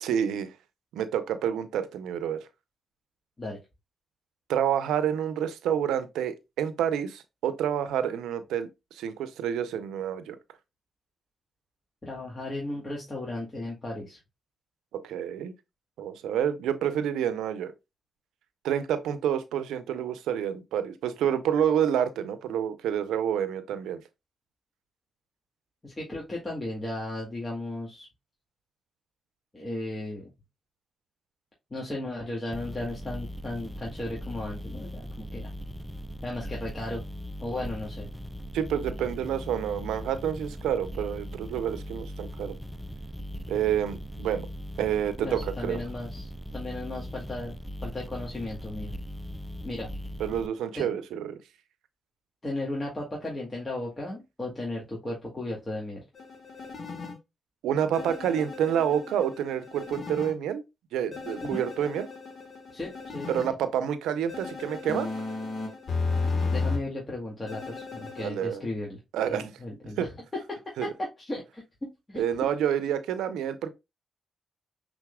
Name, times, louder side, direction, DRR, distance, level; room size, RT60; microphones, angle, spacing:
voice 1, 0.0-0.5 0.9-2.5 4.5-10.4 14.9-15.5 16.0-17.7 18.6-24.0 38.5-42.6 43.5-44.5 44.8-45.8 50.2-51.4 57.6-60.6 60.9-62.1 63.3-65.1 68.2-68.6 69.1-69.5 70.0-70.1 70.8-70.9 72.2-73.7, right 9 dB, 85° right, 0.6 m, -28 dB
voice 2, 12.0-14.2 25.8-28.1 29.5-30.3 31.7-35.5 36.2-37.0 37.4-38.1 45.2-48.9 49.6-49.9 50.7-50.9 52.4-56.0 61.4-61.6 62.7-63.4 66.5-70.1 70.5-70.6 71.2-72.2, left 2 dB, 30° left, 2.1 m, -35 dB
sound 1, 32.5-50.5, equal, 5° right, 0.5 m, -39 dB
sound 2, 56.1-57.1 57.9-60.3 61.1-63.5 64.3-66.8 67.5-68.3, left 4 dB, 55° left, 1.4 m, -34 dB
5.9 x 3.8 x 2.3 m
supercardioid pair, 50°, 0 cm